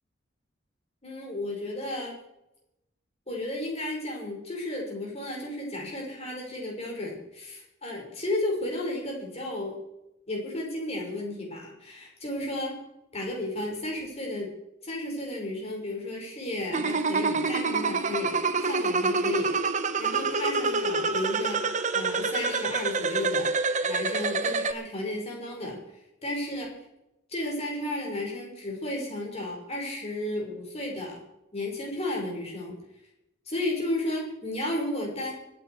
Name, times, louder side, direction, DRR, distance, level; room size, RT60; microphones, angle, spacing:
voice 1, 1.0-2.2 3.3-9.8 10.3-12.7 13.1-14.5 14.8-18.4 18.6-21.7 21.9-23.5 23.8-25.8 26.2-26.7 27.3-31.2 31.5-32.8 33.5-35.3, left 1 dB, 35° left, -1 dB, 5.6 m, -33 dB
sound 1, 16.7-24.7, right 4 dB, 40° right, 1.0 m, -27 dB
25.0 x 9.1 x 4.9 m, 0.89 s
head